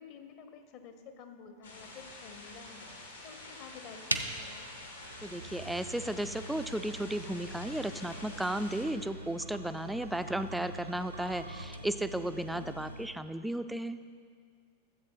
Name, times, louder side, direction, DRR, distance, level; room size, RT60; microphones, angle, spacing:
voice 1, 0.0-4.7 12.5-12.9, left 5 dB, 45° left, 7 dB, 0.9 m, -51 dB
sound 1, 1.6-8.9, left 2 dB, 75° left, 1.6 m, -48 dB
sound 2, 4.1-13.2, right 2 dB, 85° right, 0.6 m, -42 dB
voice 2, 5.2-14.0, right 1 dB, 5° right, 11 dB, 0.3 m, -34 dB
13.5 x 7.6 x 3.9 m, 2.1 s
figure-of-eight pair, 90°, 0 cm